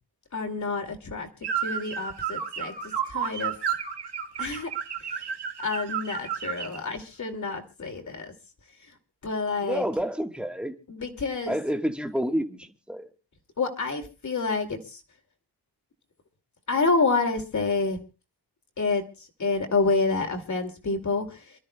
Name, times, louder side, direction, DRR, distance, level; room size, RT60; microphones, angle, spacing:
voice 1, 0.3-1.3 1.6-2.7 3.1-3.5 4.4-4.7 5.6-8.3 9.2-9.8 10.9-11.6 13.6-15.0 16.7-18.0 18.8-19.0 19.4-21.4, left 4 dB, 45° left, 2.4 m, -28 dB
sound 1, 1.4-6.8, right 8 dB, 85° right, 1.7 m, -32 dB
voice 2, 9.6-10.7 11.5-13.1, equal, 5° right, 1.3 m, -29 dB
28.0 x 13.0 x 2.2 m
wide cardioid pair, 150°, 40 cm